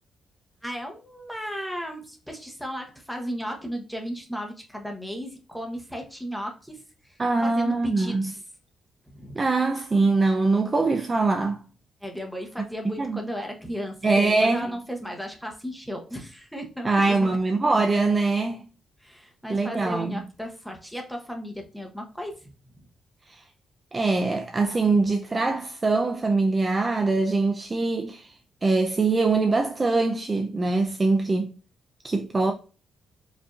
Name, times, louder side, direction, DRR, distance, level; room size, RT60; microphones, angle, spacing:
voice 1, 0.6-8.4 9.1-9.4 12.0-17.4 19.0-22.5 24.9-25.0, equal, ahead, 0.8 m, -35 dB
voice 2, 7.2-8.3 9.4-11.6 13.0-13.2 14.0-14.7 16.8-18.7 19.5-20.2 23.3-23.4 23.9-28.3 28.6-31.5 32.0-32.5, right 3 dB, 20° right, 0.3 m, -23 dB
5.1 x 2.6 x 2.3 m
wide cardioid pair, 175°, 0 cm